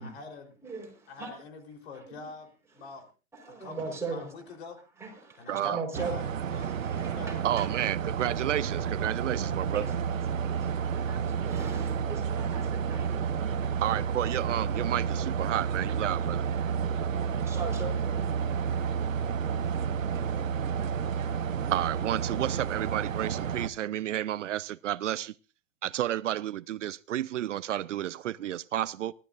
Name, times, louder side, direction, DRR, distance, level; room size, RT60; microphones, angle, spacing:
voice 1, 0.0-0.5 1.1-2.5 2.7-3.1 3.4-3.8 4.1-4.8 5.4-7.4 10.8-11.2, left 4 dB, 55° left, 4.0 m, -45 dB
voice 2, 0.6-1.4 1.9-2.2 3.3-4.3 5.0-6.2 6.5-7.7 9.7-9.9 10.3-13.8 17.2-18.9, right 4 dB, 5° right, 4.5 m, -40 dB
voice 3, 5.5-5.8 7.4-9.9 13.8-16.5 21.2-25.3 25.8-29.1, right 12 dB, 70° right, 0.6 m, -31 dB
sound 1, 5.9-23.7, right 7 dB, 85° right, 1.1 m, -30 dB
28.5 x 13.0 x 2.6 m
hypercardioid pair, 140°, 39 cm